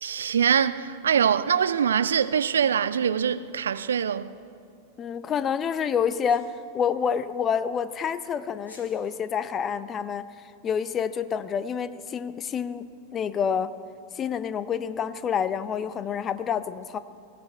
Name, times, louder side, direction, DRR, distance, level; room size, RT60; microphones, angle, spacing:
voice 1, 0.0-4.3, right 8 dB, 65° right, 0.4 m, -23 dB
voice 2, 5.0-10.3 10.6-13.7 14.2-17.0, left 7 dB, 25° left, 0.6 m, -28 dB
Sneeze, 6.3-6.5 8.6-8.9, left 1 dB, 80° left, 2.9 m, -50 dB
20.0 x 16.0 x 4.5 m
figure-of-eight pair, 90°, 0 cm